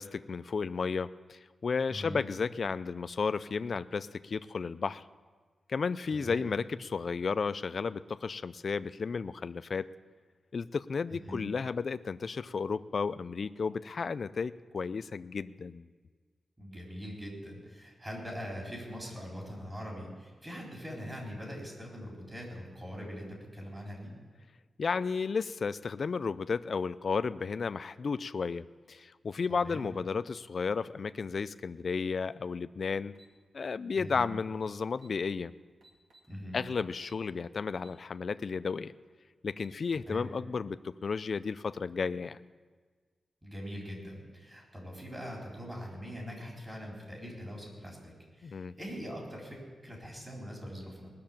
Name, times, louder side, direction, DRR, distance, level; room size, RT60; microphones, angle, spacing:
voice 1, 0.0-5.0 5.7-9.9 10.5-15.9 24.8-33.1 33.5-35.5 36.5-38.9 39.4-40.8 41.0-42.4 48.4-48.7, left 5 dB, 45° left, 14 dB, 0.4 m, -33 dB
voice 2, 1.9-2.2 6.1-6.5 11.1-11.5 16.6-24.1 29.5-29.9 33.9-34.3 36.3-36.6 40.1-40.3 43.4-51.1, equal, 20° right, -2 dB, 4.0 m, -42 dB
sound 1, 33.1-33.3 34.6-34.7 34.9-35.2 35.8-36.3 37.0-37.3 37.8-38.0 38.4-38.5 39.3-39.8, right 2 dB, 90° right, 2.2 m, -60 dB
19.5 x 6.7 x 8.7 m, 1.5 s
wide cardioid pair, 160°, 0 cm